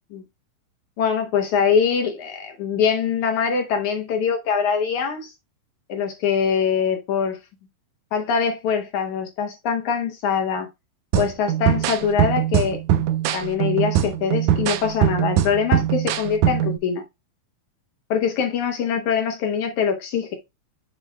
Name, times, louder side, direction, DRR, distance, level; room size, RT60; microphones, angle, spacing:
voice 1, 1.0-5.3 5.9-7.4 8.1-10.7 11.1-12.8 13.3-17.0 18.1-20.3, left 6 dB, 70° left, 2.0 m, -23 dB
sound 1, 11.1-16.8, right 11 dB, 90° right, 1.6 m, -22 dB
7.6 x 7.1 x 2.2 m
omnidirectional pair, 4.3 m